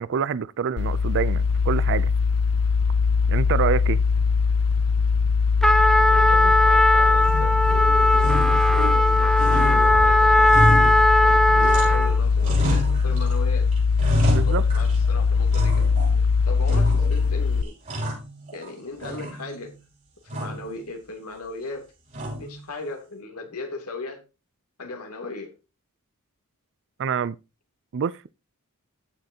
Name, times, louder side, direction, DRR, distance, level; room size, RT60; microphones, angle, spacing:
voice 1, 0.0-2.1 3.3-4.0 14.2-14.6 27.0-27.4 27.9-28.2, right 6 dB, 55° right, 0.4 m, -26 dB
sound 1, 0.8-17.6, left 5 dB, 70° left, 0.4 m, -21 dB
Trumpet, 5.6-12.2, left 1 dB, ahead, 0.6 m, -18 dB
voice 2, 5.8-13.7 14.5-15.9 16.4-17.8 18.5-19.8 20.2-21.9 22.2-24.2 24.8-25.5, left 3 dB, 85° left, 2.9 m, -37 dB
sound 2, 7.2-7.8 8.2-9.1 9.4-12.1 12.4-13.4 13.7-15.1 15.5-16.2 16.7-17.3 17.6-18.7 19.0-19.7 20.3-20.7 22.1-22.6, equal, 35° right, 5.5 m, -29 dB
16.0 x 6.6 x 2.8 m
head